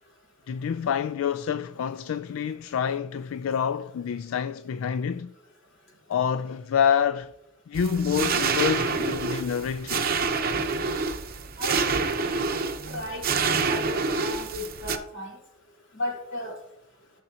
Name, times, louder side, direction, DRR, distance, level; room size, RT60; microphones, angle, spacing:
voice 1, 0.5-5.3 6.1-7.3 7.7-10.1, left 7 dB, 80° left, 0.3 m, -27 dB
sound 1, 7.7-15.0, right 4 dB, 45° right, 0.8 m, -27 dB
voice 2, 11.6-13.3 13.6-15.4 15.9-16.6, left 1 dB, 60° left, 3.7 m, -35 dB
16.5 x 6.5 x 2.9 m
head